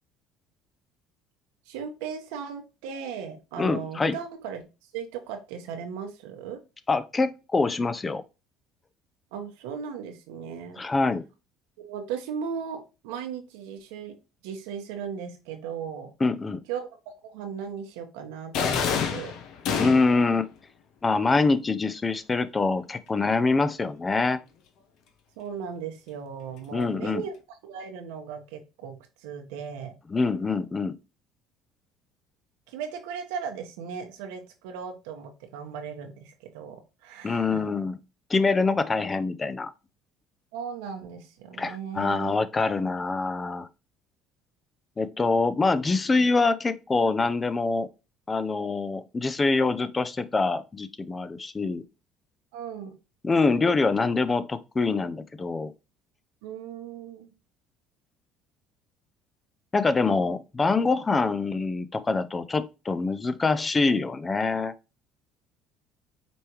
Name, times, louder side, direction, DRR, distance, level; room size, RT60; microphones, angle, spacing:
voice 1, 1.7-4.6 4.9-6.6 9.3-10.8 11.8-14.2 14.4-16.1 16.7-16.9 17.2-19.3 25.4-29.9 32.7-37.6 40.5-42.3 52.5-53.0 56.4-57.3, right 7 dB, 90° right, 1.1 m, -37 dB
voice 2, 3.6-4.1 6.9-8.2 10.8-11.2 16.2-16.6 19.8-20.5 21.0-24.4 26.7-27.2 30.1-30.9 37.2-38.0 38.3-39.7 41.6-43.7 45.0-47.9 48.3-51.8 53.2-55.7 59.7-64.7, left 3 dB, 25° left, 0.5 m, -25 dB
sound 1, 18.5-20.3, left 6 dB, 65° left, 0.9 m, -27 dB
5.2 x 3.3 x 3.0 m
supercardioid pair, 95°, 0 cm